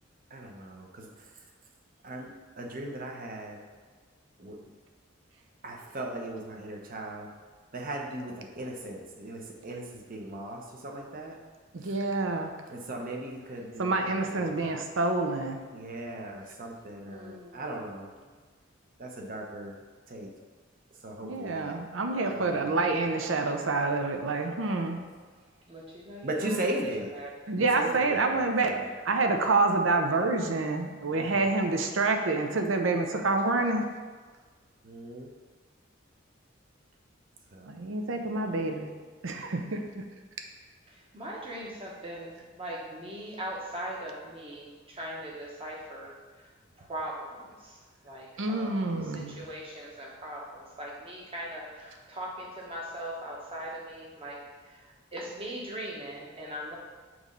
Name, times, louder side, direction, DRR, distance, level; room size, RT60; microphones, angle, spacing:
voice 1, 0.3-1.1 2.0-2.3 2.6-3.6 4.4-4.6 5.6-7.3 7.7-11.4 12.7-14.8 15.7-18.1 19.0-19.7 20.1-20.3 21.0-21.8 22.2-22.9 26.2-27.1 27.6-28.8 31.1-31.5 34.8-35.3 37.5-37.8, right 1 dB, 45° right, 1 dB, 0.8 m, -38 dB
voice 2, 11.7-12.5 13.8-15.6 21.2-25.0 26.8-27.0 27.5-28.7 29.0-33.9 37.7-38.9 39.2-40.0 48.4-49.4, right 3 dB, 75° right, 4 dB, 0.6 m, -27 dB
voice 3, 17.0-18.3 25.7-26.6 27.0-27.3 41.1-46.1 46.8-47.7 48.0-48.9 49.3-54.4 55.1-56.8, right 1 dB, 30° right, -3 dB, 1.1 m, -40 dB
6.2 x 3.1 x 5.3 m, 1.4 s
head